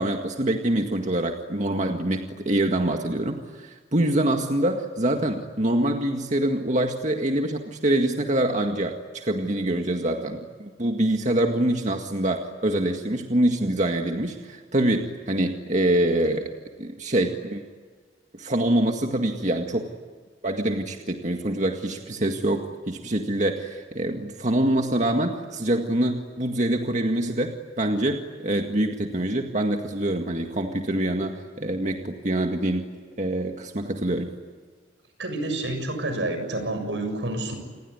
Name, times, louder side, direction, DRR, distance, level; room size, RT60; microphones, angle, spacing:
voice 1, 0.0-16.5 16.8-17.6 18.3-19.9 20.4-32.9 33.2-34.3, right 1 dB, 45° right, 3 dB, 1.9 m, -25 dB
voice 2, 35.2-37.6, right 2 dB, 90° right, 7 dB, 7.2 m, -28 dB
29.0 x 21.0 x 9.8 m, 1.5 s
head